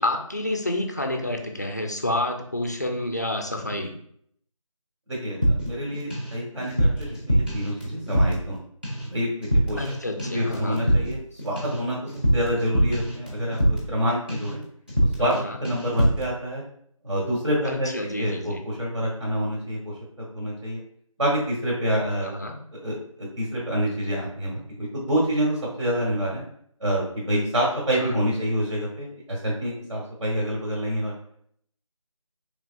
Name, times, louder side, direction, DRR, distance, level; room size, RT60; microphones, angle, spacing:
voice 1, 0.0-3.9 9.8-10.8 15.2-15.6 17.6-18.6 22.2-22.6 28.0-28.2, left 1 dB, 30° left, 4 dB, 0.4 m, -29 dB
voice 2, 5.1-8.5 9.1-9.8 10.2-12.0 12.3-14.6 15.2-15.3 15.6-16.6 17.0-19.9 20.3-20.8 21.2-26.4 26.8-31.1, equal, 65° right, -4 dB, 1.4 m, -27 dB
sound 1, 5.4-6.3 6.6-8.6 8.8-9.1 9.4-9.9 10.2-14.0 14.3-14.6 14.9-15.4 15.6-16.3, right 1 dB, 15° right, 0.6 m, -24 dB
4.6 x 3.4 x 2.4 m, 0.66 s
figure-of-eight pair, 170°, 18 cm